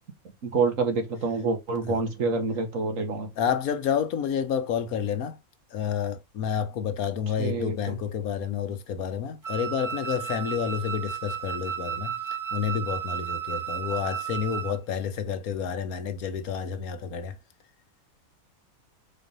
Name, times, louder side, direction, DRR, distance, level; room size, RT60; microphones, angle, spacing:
voice 1, 0.4-3.3 7.4-8.0, right 4 dB, 65° right, 2.0 m, -27 dB
voice 2, 3.4-5.4 5.7-12.2 12.5-17.4, left 7 dB, 80° left, 1.4 m, -29 dB
Wind instrument woodwind instrument, 9.4-14.8, right 8 dB, 15° right, 0.8 m, -33 dB
4.6 x 4.3 x 5.3 m
omnidirectional pair, 1.5 m